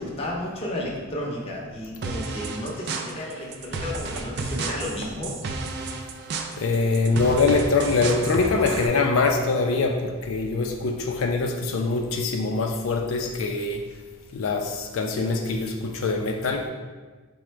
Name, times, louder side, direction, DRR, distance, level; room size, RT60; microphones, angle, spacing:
voice 1, 0.0-5.7, left 1 dB, 30° left, -3 dB, 0.7 m, -33 dB
sound 1, 2.0-8.9, right 3 dB, 50° right, 0.3 m, -32 dB
voice 2, 6.6-13.9 14.3-16.7, left 3 dB, 80° left, 2 dB, 0.4 m, -23 dB
4.8 x 2.1 x 4.4 m, 1.4 s
head